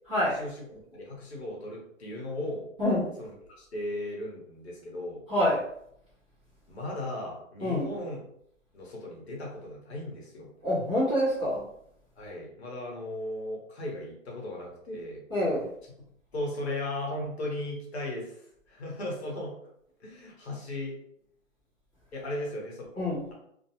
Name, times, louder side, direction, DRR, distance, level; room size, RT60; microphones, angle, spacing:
voice 1, 0.1-0.4 2.8-3.1 5.3-5.6 7.6-7.9 10.6-11.6 15.3-15.7 23.0-23.3, left 1 dB, 10° right, -18 dB, 0.6 m, -26 dB
voice 2, 0.9-2.7 3.2-5.2 6.7-8.2 8.7-10.5 12.2-15.2 16.3-19.5 20.0-20.9 22.1-23.3, left 1 dB, 50° left, -2 dB, 1.0 m, -36 dB
2.5 x 2.2 x 2.8 m, 0.72 s
hypercardioid pair, 175°, 40 cm